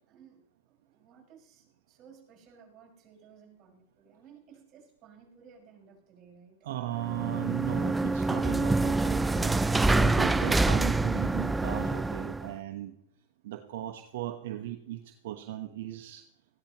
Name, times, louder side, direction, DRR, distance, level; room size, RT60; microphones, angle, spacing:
voice 1, 0.1-0.4 0.7-6.7, right 6 dB, 35° right, 0 dB, 5.9 m, -56 dB
voice 2, 6.6-9.5 10.0-12.9 13.4-16.2, right 13 dB, 70° right, 4 dB, 1.1 m, -37 dB
sound 1, 7.0-12.5, right 2 dB, 10° right, 0.4 m, -26 dB
19.0 x 15.0 x 3.1 m, 0.78 s
hypercardioid pair, 125°, 0 cm